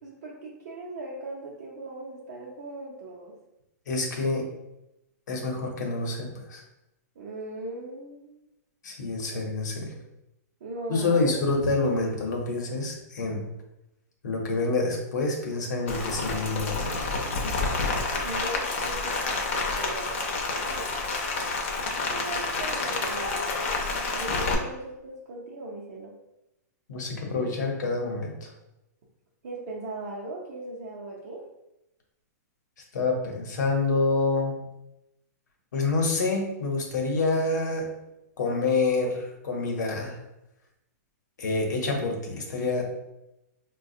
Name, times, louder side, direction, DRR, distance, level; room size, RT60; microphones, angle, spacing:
voice 1, 0.0-3.3 7.2-8.5 9.3-9.4 9.9-10.0 10.6-11.4 18.2-20.2 20.6-20.9 21.9-26.1 29.4-31.5, right 2 dB, 50° right, -5 dB, 0.6 m, -39 dB
voice 2, 3.9-4.5 5.3-6.6 8.8-9.9 10.9-13.4 14.2-16.9 26.9-28.5 32.9-34.6 35.7-37.9 38.4-40.2 41.4-42.8, left 3 dB, 90° left, 1 dB, 0.8 m, -27 dB
Rain, 15.9-24.5, left 3 dB, 45° left, 0.5 m, -29 dB
4.0 x 2.2 x 2.7 m, 0.91 s
hypercardioid pair, 175°, 9 cm